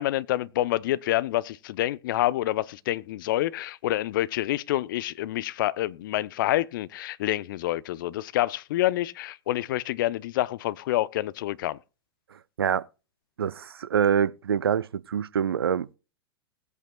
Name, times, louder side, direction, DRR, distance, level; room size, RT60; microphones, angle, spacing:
voice 1, 0.0-11.8, left 15 dB, 60° left, 0.6 m, -27 dB
voice 2, 13.4-16.0, right 8 dB, 80° right, 0.5 m, -25 dB
20.0 x 8.2 x 2.2 m
figure-of-eight pair, 100°, 13 cm